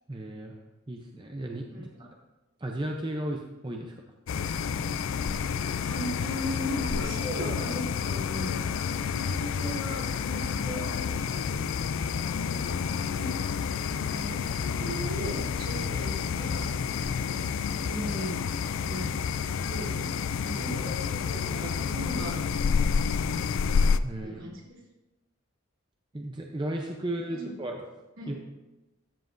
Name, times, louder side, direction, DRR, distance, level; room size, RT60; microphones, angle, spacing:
voice 1, 0.1-0.5 0.9-2.1 2.6-4.0 24.0-24.4 26.1-27.8 28.3-28.4, right 1 dB, 20° right, 1 dB, 0.6 m, -35 dB
sound 1, 4.3-24.0, left 6 dB, 65° left, 0.3 m, -29 dB
voice 2, 5.5-8.7 9.0-11.6 12.2-12.8 13.1-13.3 14.1-17.4 17.8-18.4 18.8-19.1 19.6-20.1 20.4-22.4 24.2-24.8 27.3-27.5 28.2-28.3, equal, 70° right, -3 dB, 3.0 m, -38 dB
13.5 x 7.5 x 2.6 m, 1.1 s
head